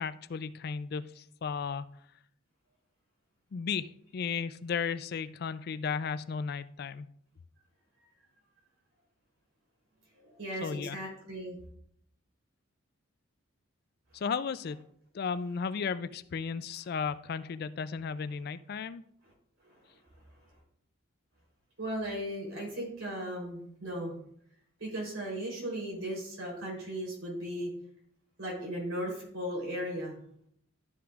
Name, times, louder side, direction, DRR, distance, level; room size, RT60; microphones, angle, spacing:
voice 1, 0.0-1.8 3.5-7.1 10.6-11.0 14.1-14.8 15.1-19.0, left 6 dB, 45° left, 15 dB, 0.3 m, -34 dB
voice 2, 10.2-11.6 19.6-19.7 21.8-24.2 24.8-27.7 28.4-30.2, equal, 80° right, -3 dB, 3.5 m, -36 dB
12.0 x 5.9 x 2.4 m, 0.68 s
head